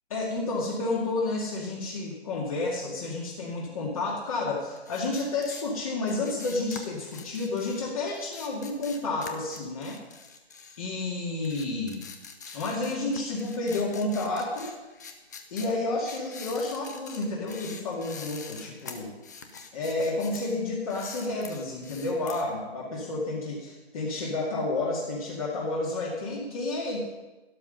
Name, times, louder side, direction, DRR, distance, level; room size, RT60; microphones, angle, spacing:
voice 1, 0.1-10.0 10.8-12.0 12.5-14.7 15.5-19.1 19.7-27.0, left 2 dB, 35° left, -4 dB, 2.3 m, -30 dB
sound 1, 4.8-11.1 11.4-20.6 20.8-22.4, left 5 dB, 15° left, 0.6 m, -45 dB
12.5 x 12.5 x 5.3 m, 1.1 s
hypercardioid pair, 155°, 33 cm